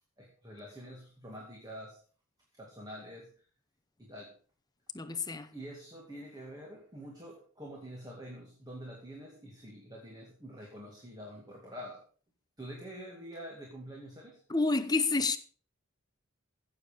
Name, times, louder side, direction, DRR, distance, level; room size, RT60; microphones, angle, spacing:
voice 1, 0.2-2.0 2.5-3.3 4.0-4.3 5.5-12.0 12.6-14.4, equal, 15° right, 2.2 m, -46 dB
voice 2, 4.9-5.5 14.5-15.4, left 3 dB, 15° left, 0.8 m, -29 dB
15.5 x 7.2 x 5.1 m
head